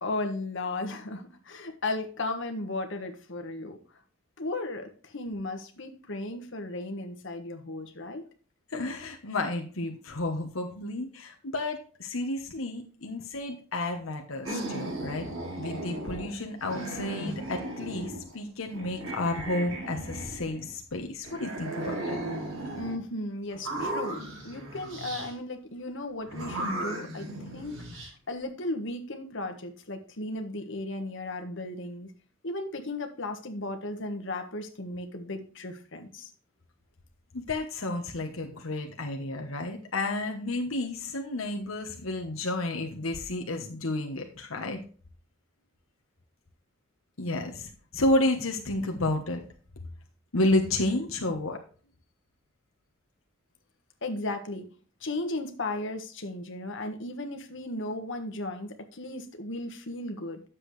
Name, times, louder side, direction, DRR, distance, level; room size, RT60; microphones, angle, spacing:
voice 1, 0.0-3.8 4.4-8.2 22.7-32.1 32.4-36.3 54.0-54.7 55.0-60.4, left 2 dB, 65° left, 5 dB, 1.5 m, -35 dB
voice 2, 8.7-15.3 15.6-22.2 37.3-44.8 47.2-49.4 50.3-51.6, left 2 dB, 85° left, 3 dB, 1.2 m, -31 dB
brain hungry zombie, 14.4-16.3 16.6-18.3 18.7-20.7 21.2-23.0 23.5-25.3 26.3-28.1, right 1 dB, 85° right, 4.4 m, -36 dB
10.0 x 7.4 x 3.2 m, 0.41 s
head